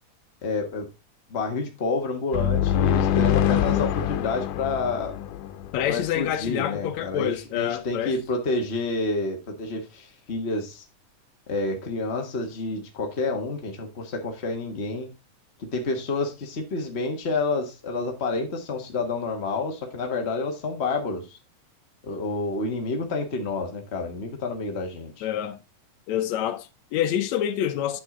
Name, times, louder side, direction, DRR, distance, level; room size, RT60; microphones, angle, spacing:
voice 1, 0.4-0.9 1.3-5.1 5.9-10.8 11.5-15.1 15.6-21.4 22.0-25.2, left 3 dB, 45° left, 0.8 m, -29 dB
sound 1, 2.3-6.1, left 10 dB, 90° left, 2.3 m, -24 dB
voice 2, 5.7-8.2 25.2-25.6 26.1-28.0, left 11 dB, 70° left, 2.0 m, -27 dB
9.2 x 7.6 x 3.7 m
omnidirectional pair, 3.6 m